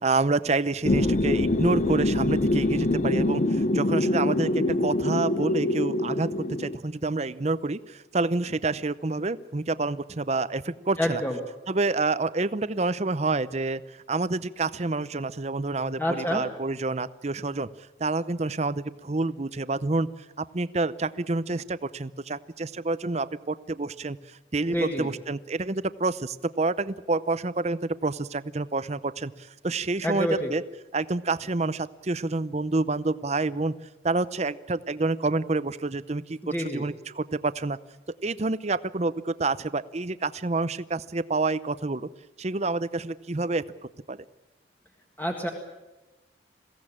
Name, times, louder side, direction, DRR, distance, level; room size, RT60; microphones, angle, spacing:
voice 1, 0.0-11.2 11.7-17.7 18.0-30.6 30.9-33.7 34.0-37.8 38.2-42.1 42.4-43.6 44.1-44.2, right 3 dB, 35° right, 16 dB, 0.7 m, -28 dB
sound 1, 0.8-6.8, left 1 dB, 40° left, 0.7 m, -24 dB
voice 2, 11.0-11.4 16.0-16.4 24.7-25.1 30.0-30.5 36.4-36.8 45.2-45.5, equal, 10° left, 2 dB, 1.7 m, -27 dB
22.5 x 16.5 x 8.7 m, 1.1 s
head